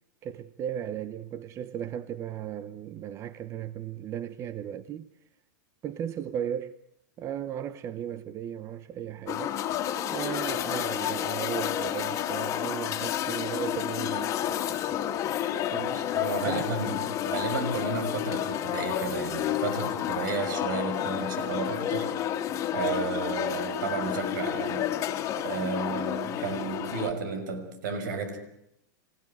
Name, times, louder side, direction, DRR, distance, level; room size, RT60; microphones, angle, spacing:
voice 1, 0.2-5.1 5.8-6.8 7.2-9.6 10.1-14.8 15.7-16.1 16.5-16.7, right 10 dB, 25° right, 0.8 m, -36 dB
sound 1, 9.3-27.1, left 11 dB, 30° left, 2.2 m, -30 dB
voice 2, 15.9-22.1 22.4-24.9 25.4-28.4, right 4 dB, 75° right, 6.1 m, -33 dB
26.5 x 17.0 x 9.1 m
supercardioid pair, 150°, 10 cm